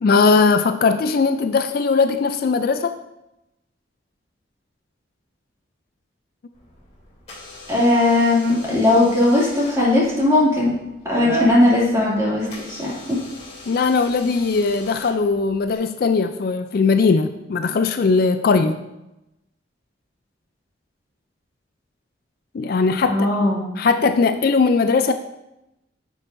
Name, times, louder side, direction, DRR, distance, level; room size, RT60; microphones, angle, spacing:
voice 1, 0.0-3.0 13.7-18.8 22.5-23.3 23.8-25.1, left 4 dB, 50° left, 9 dB, 0.3 m, -19 dB
Door / Alarm, 6.5-15.8, right 1 dB, 35° left, 2.9 m, -36 dB
voice 2, 7.7-10.7 11.0-13.2 23.1-23.7, left 2 dB, 15° right, -6 dB, 2.3 m, -18 dB
9.7 x 6.2 x 2.6 m, 0.91 s
head